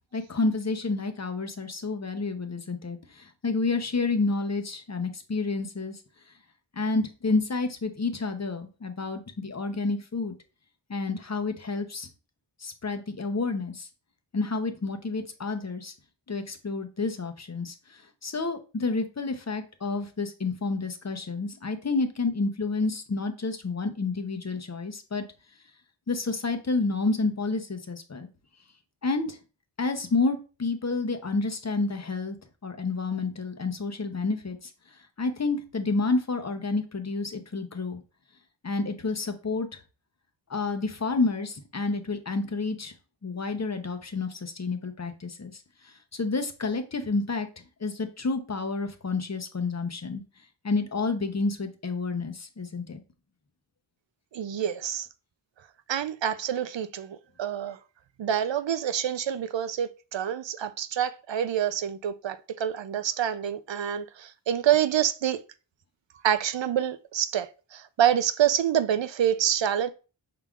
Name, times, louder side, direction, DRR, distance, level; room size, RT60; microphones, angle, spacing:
voice 1, 0.1-6.0 6.8-10.3 10.9-12.1 12.6-13.9 14.3-15.9 16.3-25.2 26.1-28.3 29.0-29.4 29.8-32.4 32.6-34.7 35.2-38.0 38.6-39.7 40.5-42.9 43.2-45.6 46.1-47.5 47.8-50.2 50.6-53.0, left 3 dB, 40° left, 0.7 m, -29 dB
voice 2, 54.3-55.1 55.9-57.8 58.2-65.4 66.2-67.5 67.7-69.9, right 10 dB, 85° right, 0.5 m, -27 dB
5.7 x 3.6 x 2.4 m
wide cardioid pair, 80°, 43 cm